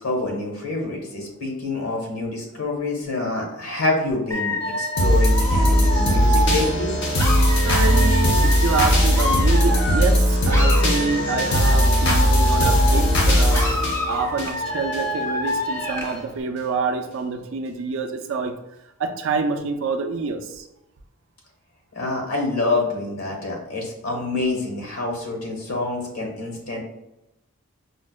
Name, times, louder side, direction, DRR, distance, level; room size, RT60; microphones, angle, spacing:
voice 1, 0.0-6.9 21.9-26.8, left 2 dB, 75° left, 1 dB, 0.9 m, -27 dB
Dog / Alarm, 4.3-10.2 10.5-13.2 13.5-16.2, equal, 10° left, 0.4 m, -27 dB
sound 1, 5.0-15.0 15.5-15.6, equal, 50° left, 0.6 m, -19 dB
voice 2, 7.6-18.6 19.0-20.7 24.1-24.2, right 4 dB, 60° right, 6 dB, 0.3 m, -27 dB
5.0 x 2.0 x 2.2 m, 0.89 s
head